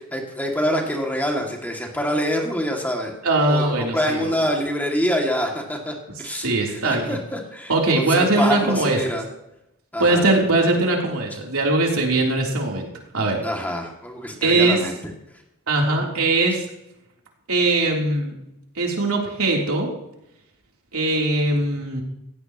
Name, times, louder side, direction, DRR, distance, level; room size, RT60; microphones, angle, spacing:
voice 1, 0.0-3.1 3.5-9.3 9.9-10.3 13.4-15.0, equal, 10° left, 1 dB, 2.3 m, -26 dB
voice 2, 3.2-4.3 6.4-7.0 7.7-9.0 10.0-12.9 13.1-13.4 14.4-14.8 15.7-16.6 17.5-18.3 18.8-19.9 20.9-22.0, right 2 dB, 70° right, -1 dB, 3.4 m, -20 dB
17.0 x 16.0 x 3.0 m, 0.83 s
head